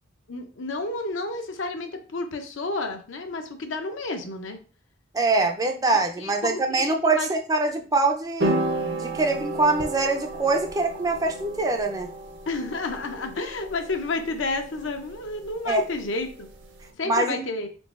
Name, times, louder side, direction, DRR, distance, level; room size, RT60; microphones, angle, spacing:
voice 1, 0.3-4.6 6.2-7.3 12.5-16.5 16.9-17.7, left 3 dB, 80° left, 6 dB, 0.6 m, -31 dB
voice 2, 5.1-8.6 9.0-12.1 15.7-15.8 17.0-17.4, right 3 dB, 20° right, 4 dB, 0.4 m, -24 dB
sound 1, 8.4-16.8, right 2 dB, 65° right, 0.7 m, -33 dB
3.9 x 3.8 x 2.4 m, 0.39 s
head